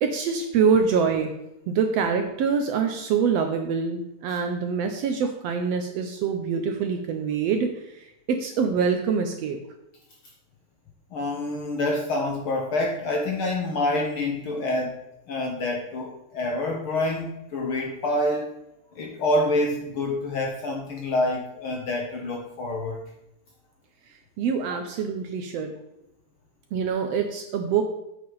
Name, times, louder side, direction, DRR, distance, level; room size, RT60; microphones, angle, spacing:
voice 1, 0.0-1.3 1.7-9.6 24.4-25.7 26.7-27.8, right 6 dB, 75° right, 5 dB, 1.6 m, -25 dB
voice 2, 11.1-14.9 15.3-18.5 18.9-23.0, left 1 dB, 60° left, 1 dB, 1.5 m, -27 dB
8.4 x 8.2 x 4.0 m, 0.86 s
omnidirectional pair, 3.5 m